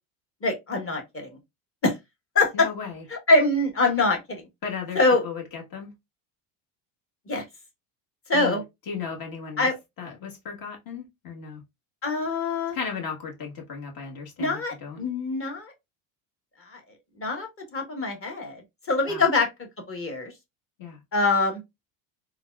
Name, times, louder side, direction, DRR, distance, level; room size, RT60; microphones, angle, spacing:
voice 1, 0.4-1.3 1.8-1.9 2.3-2.7 3.1-4.4 4.9-5.2 7.3-7.4 8.3-8.6 9.6-9.8 12.0-12.8 14.4-15.7 16.7-16.8 17.2-18.6 18.9-19.5 19.9-20.3 21.1-21.6, left 3 dB, 30° left, 1.3 m, -24 dB
voice 2, 2.5-3.0 4.6-5.9 8.3-8.6 8.9-9.7 10.0-11.6 12.7-15.1 19.1-19.2 20.8-21.0, left 6 dB, 50° left, 1.5 m, -35 dB
3.9 x 2.4 x 2.3 m
supercardioid pair, 100°, 44 cm